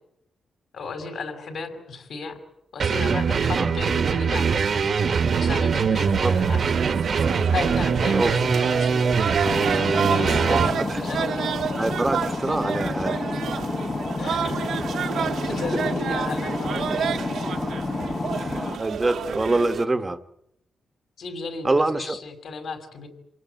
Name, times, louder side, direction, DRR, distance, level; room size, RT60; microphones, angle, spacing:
voice 1, 0.7-2.4 2.7-4.7 5.4-6.6 7.5-9.2 10.1-11.5 14.2-14.8 15.2-17.2 21.2-23.1, left 4 dB, 65° left, 6 dB, 5.9 m, -34 dB
sound 1, 2.8-10.7, right 5 dB, 55° right, 1.5 m, -22 dB
sound 2, 6.1-19.8, right 8 dB, 80° right, 1.8 m, -30 dB
sound 3, 9.4-18.8, left 3 dB, 30° left, 1.2 m, -29 dB
voice 2, 10.5-11.0 11.7-13.2 16.9-17.0 18.3-20.2 21.6-22.2, right 2 dB, 20° right, 8 dB, 1.3 m, -25 dB
27.5 x 19.0 x 9.3 m, 0.78 s
cardioid pair, 105°, 0 cm